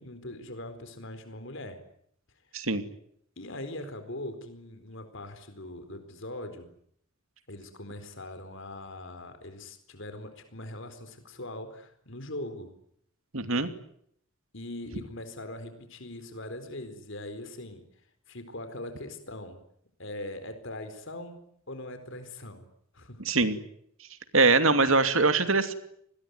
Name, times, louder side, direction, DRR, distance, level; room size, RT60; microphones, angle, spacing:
voice 1, 0.0-1.8 3.4-6.7 7.5-12.7 14.5-17.8 18.3-19.6 20.0-21.4 21.7-22.7 22.9-23.2, left 1 dB, 60° left, 9 dB, 4.3 m, -41 dB
voice 2, 13.3-13.7 23.2-23.6 24.3-25.7, right 3 dB, 70° right, 9 dB, 2.7 m, -23 dB
27.5 x 20.5 x 9.6 m, 0.71 s
head